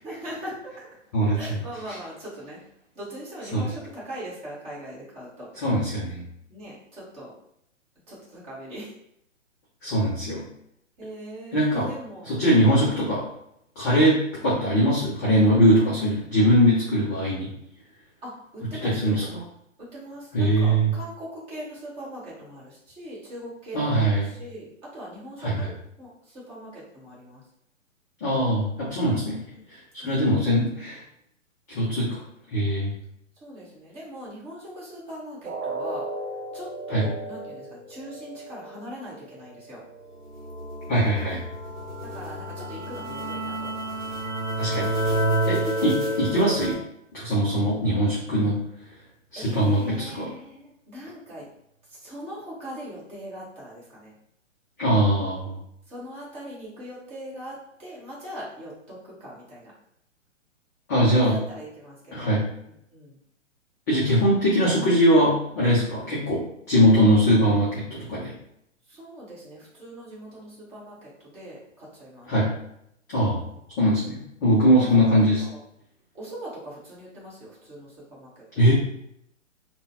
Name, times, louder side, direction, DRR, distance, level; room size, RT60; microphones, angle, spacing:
voice 1, 0.0-2.6 2.9-5.5 6.5-7.3 8.1-8.9 11.0-13.0 14.3-14.4 18.2-19.3 19.9-27.4 29.3-29.7 30.0-30.6 33.4-36.1 36.5-39.8 42.0-44.1 45.6-45.9 49.3-51.5 51.9-54.1 55.9-59.7 61.1-63.2 68.9-72.3 73.2-73.6 74.8-75.6 76.1-78.7, equal, 15° right, -7 dB, 1.1 m, -41 dB
voice 2, 1.1-1.6 3.5-3.7 5.6-6.2 9.8-10.4 11.5-11.9 12.2-13.2 13.8-17.5 18.8-19.4 20.3-20.9 23.7-24.3 25.4-25.7 28.2-29.4 29.7-31.0 31.7-32.2 32.5-32.9 36.9-37.1 40.9-41.4 44.6-44.9 45.5-46.8 47.1-48.6 49.3-50.3 54.8-55.6 60.9-61.4 62.1-62.5 63.9-68.3 72.3-72.5 73.1-73.4 73.8-75.4 78.6-78.7, equal, 15° left, -9 dB, 0.4 m, -21 dB
sound 1, 35.5-41.4 41.8-42.0 42.5-42.6, right 2 dB, 80° right, 0.6 m, -37 dB
sound 2, 40.2-46.7, right 1 dB, 40° right, 1.1 m, -29 dB
3.6 x 2.1 x 2.7 m, 0.74 s
figure-of-eight pair, 125°, 39 cm